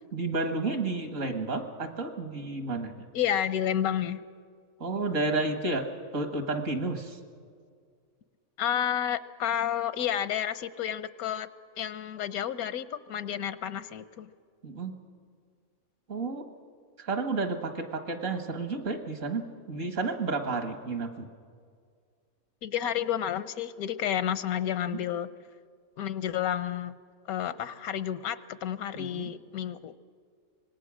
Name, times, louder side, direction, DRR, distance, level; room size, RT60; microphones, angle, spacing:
voice 1, 0.1-2.9 4.8-5.9 6.1-7.2 14.6-14.9 16.1-16.4 17.0-21.3 24.9-25.0 29.0-29.3, right 3 dB, 60° right, 6 dB, 2.1 m, -31 dB
voice 2, 3.1-4.2 8.6-11.5 11.8-14.3 22.6-25.3 26.0-26.9 27.3-29.9, left 10 dB, 90° left, 14 dB, 1.2 m, -30 dB
25.0 x 19.5 x 6.3 m, 2.1 s
omnidirectional pair, 1.5 m